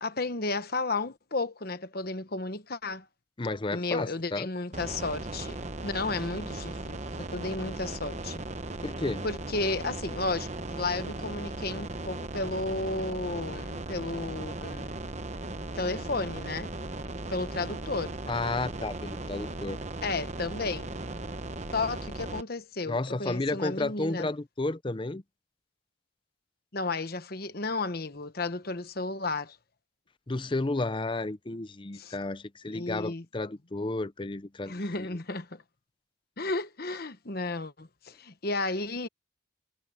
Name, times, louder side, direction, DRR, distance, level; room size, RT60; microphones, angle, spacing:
voice 1, 0.0-3.0 3.7-8.4 9.2-14.9 15.7-16.7 17.3-18.2 20.0-20.9 21.7-24.3 26.7-29.6 31.9-32.1 32.7-33.2 34.7-35.6 36.4-39.1, left 3 dB, 50° left, 1.2 m, -33 dB
voice 2, 3.4-4.5 8.8-9.3 18.3-19.8 22.9-25.2 30.3-34.8, left 2 dB, 25° left, 0.6 m, -32 dB
sound 1, 4.7-22.4, right 2 dB, 35° right, 1.0 m, -37 dB
head